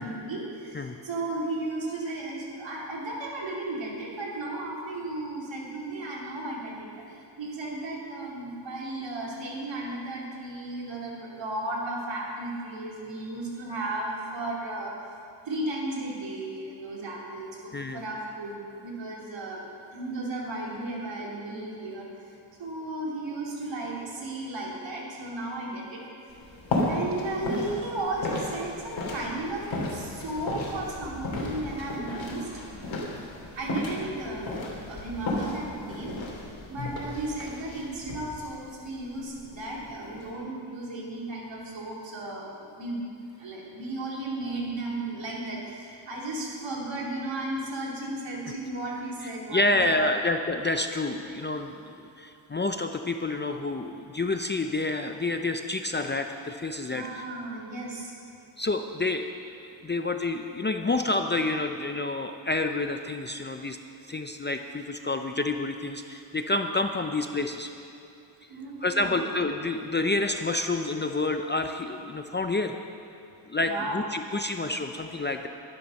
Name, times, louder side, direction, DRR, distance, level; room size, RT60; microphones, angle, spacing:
voice 1, 0.0-14.9 15.4-19.6 19.9-22.3 22.6-26.0 26.9-32.5 33.5-43.0 43.4-50.2 56.9-58.1 59.7-59.9 68.5-69.3 73.6-74.1, right 2 dB, 65° right, -4 dB, 3.2 m, -35 dB
sound 1, 26.3-40.3, left 2 dB, 65° left, 2.8 m, -34 dB
voice 2, 49.5-57.2 58.6-59.3 59.6-63.8 64.1-67.7 68.8-72.8 73.5-75.5, left 2 dB, 25° left, 6 dB, 0.5 m, -28 dB
12.0 x 11.5 x 6.4 m, 2.6 s
wide cardioid pair, 125°, 48 cm